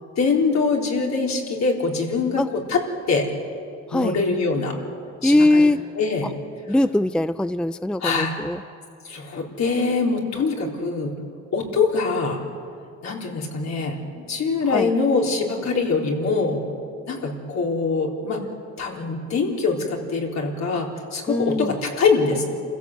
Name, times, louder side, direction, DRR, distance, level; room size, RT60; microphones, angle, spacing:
voice 1, 0.2-2.8 3.1-3.3 3.9-4.7 5.2-5.7 5.9-6.3 8.0-8.3 9.0-11.2 11.5-12.4 13.0-16.6 17.1-18.4 18.8-22.5, left 4 dB, 65° left, -1 dB, 4.2 m, -23 dB
voice 2, 5.2-5.8 6.7-8.6 14.7-14.9 21.3-21.7, left 1 dB, 5° left, 12 dB, 0.5 m, -20 dB
28.0 x 16.0 x 8.1 m, 2.4 s
cardioid pair, 90°, 30 cm